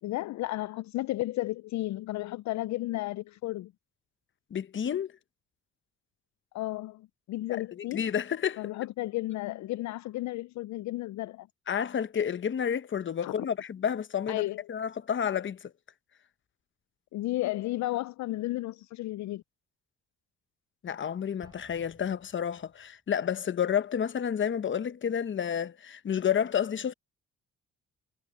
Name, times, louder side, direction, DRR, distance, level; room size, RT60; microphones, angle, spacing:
voice 1, 0.0-3.7 6.5-8.1 8.6-11.5 13.2-13.4 14.3-14.6 17.1-19.4, left 17 dB, 70° left, 0.4 m, -33 dB
voice 2, 4.5-5.1 7.5-7.6 7.9-8.7 11.7-15.7 20.8-26.9, left 8 dB, 40° left, 0.9 m, -30 dB
Explosion, 21.4-23.0, right 2 dB, 15° right, 3.5 m, -59 dB
cardioid pair, 90°, 30 cm